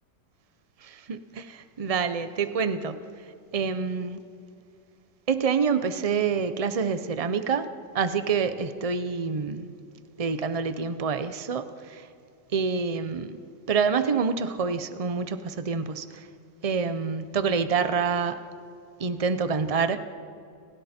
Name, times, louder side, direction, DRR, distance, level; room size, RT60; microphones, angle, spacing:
voice 1, 0.8-3.0 3.5-4.2 5.3-7.7 7.9-9.7 10.2-12.0 12.5-13.4 13.7-16.3 16.6-18.4 19.0-20.0, right 5 dB, 55° right, 10 dB, 0.4 m, -27 dB
30.0 x 27.0 x 4.4 m, 2.4 s
omnidirectional pair, 2.0 m